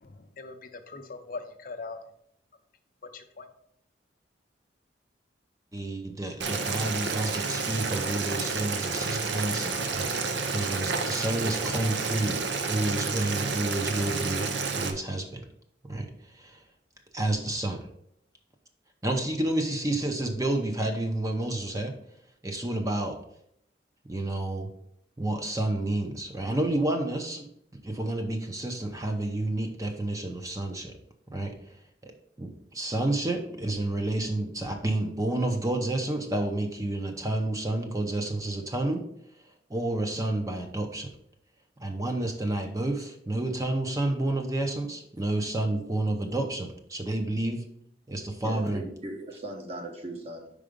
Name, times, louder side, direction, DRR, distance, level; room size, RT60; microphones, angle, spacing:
voice 1, 0.0-0.6 0.9-2.0 3.1-3.5, left 3 dB, 50° left, 7 dB, 0.6 m, -40 dB
voice 2, 5.7-10.1 10.5-12.4 12.6-15.4 15.8-16.1 16.3-16.6 17.1-17.9 19.0-21.9 22.4-23.2 24.0-24.7 25.2-30.9 31.3-31.5 32.0-32.1 32.4-39.0 39.7-41.1 41.8-47.6 48.1-48.9, right 1 dB, 20° right, 4 dB, 0.7 m, -30 dB
Boiling, 6.4-14.9, right 4 dB, 75° right, 0.7 m, -30 dB
voice 3, 48.3-50.5, right 1 dB, 35° right, 3 dB, 1.0 m, -38 dB
5.0 x 4.8 x 5.1 m, 0.72 s
head